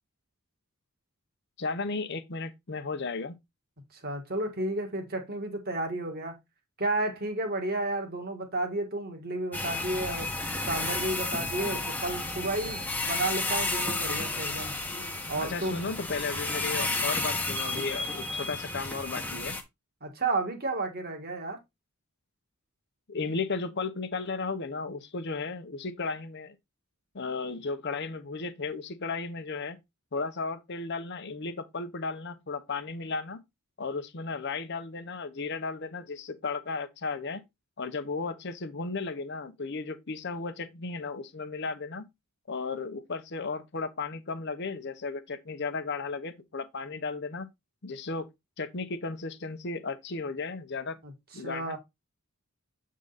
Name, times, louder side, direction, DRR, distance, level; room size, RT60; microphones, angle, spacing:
voice 1, 1.6-3.4 15.4-19.6 23.1-26.6 27.1-29.8 30.1-33.4 33.8-37.4 37.8-42.1 42.5-47.5 47.8-48.3 48.6-51.0 51.3-51.8, left 4 dB, 50° left, 0.7 m, -34 dB
voice 2, 3.9-6.4 6.8-10.3 10.7-14.7 15.3-15.8 20.0-21.6 51.0-51.1 51.4-51.8, right 2 dB, 45° right, 1.7 m, -32 dB
sound 1, 9.5-19.6, left 2 dB, 10° left, 1.1 m, -32 dB
8.1 x 3.7 x 4.0 m
head